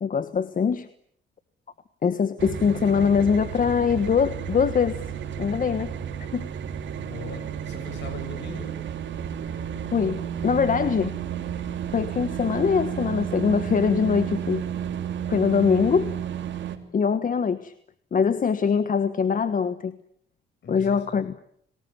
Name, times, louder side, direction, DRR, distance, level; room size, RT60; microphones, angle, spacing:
voice 1, 0.0-0.9 2.0-5.0 5.4-5.9 6.2-6.5 9.9-11.2 11.9-14.7 15.3-16.1 16.9-17.7 18.1-20.0 20.7-21.4, left 6 dB, 45° left, 12 dB, 1.4 m, -23 dB
sound 1, 2.4-16.8, right 9 dB, 70° right, 3.5 m, -32 dB
voice 2, 6.9-8.7 20.6-21.0, left 4 dB, 65° left, 9 dB, 7.7 m, -40 dB
30.0 x 20.0 x 8.9 m, 0.68 s
cardioid pair, 90°, 20 cm